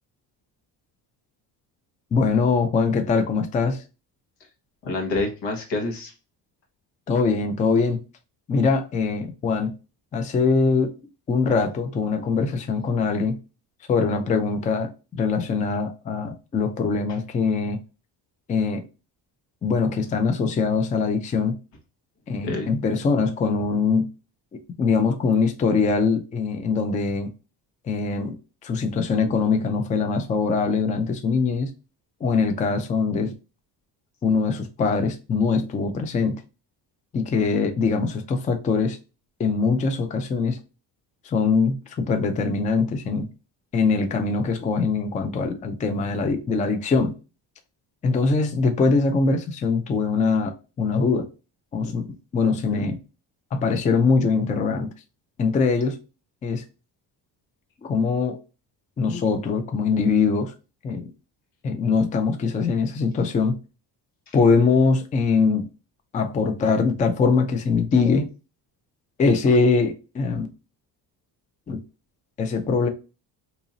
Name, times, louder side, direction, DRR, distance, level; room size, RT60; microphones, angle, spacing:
voice 1, 2.1-3.8 7.1-8.0 8.5-9.7 10.1-10.9 11.3-13.4 13.9-17.8 18.5-18.9 19.6-21.6 22.3-24.1 24.5-27.3 27.9-31.7 32.2-33.3 34.2-36.4 37.1-39.0 39.4-40.6 41.2-43.3 43.7-47.1 48.0-51.3 51.7-53.0 53.5-54.9 55.4-56.0 56.4-56.6 57.8-58.4 59.0-60.5 60.8-61.1 61.6-63.6 64.3-65.7 66.1-68.3 69.2-70.5 71.7-71.8 72.4-72.9, left 4 dB, 20° left, 0.3 m, -22 dB
voice 2, 4.8-6.1 22.4-22.8 52.4-52.9 64.3-64.4, left 2 dB, 90° left, 1.3 m, -29 dB
2.8 x 2.6 x 3.9 m
cardioid pair, 140°, 41 cm